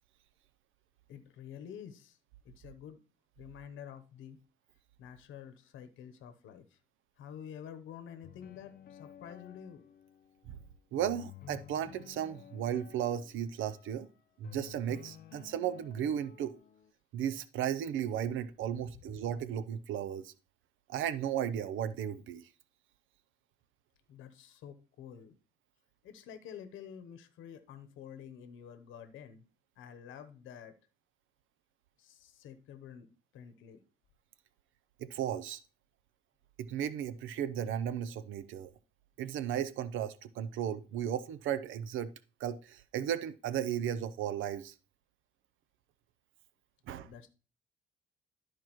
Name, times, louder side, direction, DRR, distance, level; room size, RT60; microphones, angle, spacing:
voice 1, 1.1-2.2 2.4-3.0 3.4-4.4 5.0-6.8 7.2-9.8 24.1-25.3 26.0-29.4 29.8-30.7 32.0-33.8 47.0-47.3, left 8 dB, 85° left, 0.9 m, -49 dB
sound 1, 8.2-10.3 11.0-13.9 14.4-16.9, left 10 dB, 50° left, 0.6 m, -53 dB
voice 2, 10.9-14.1 14.4-16.6 17.1-20.3 20.9-22.5 35.0-35.6 36.6-38.7 39.2-42.1 42.4-44.7 46.9-47.1, right 9 dB, 80° right, 0.6 m, -35 dB
12.5 x 4.6 x 3.0 m
cardioid pair, 90°, 20 cm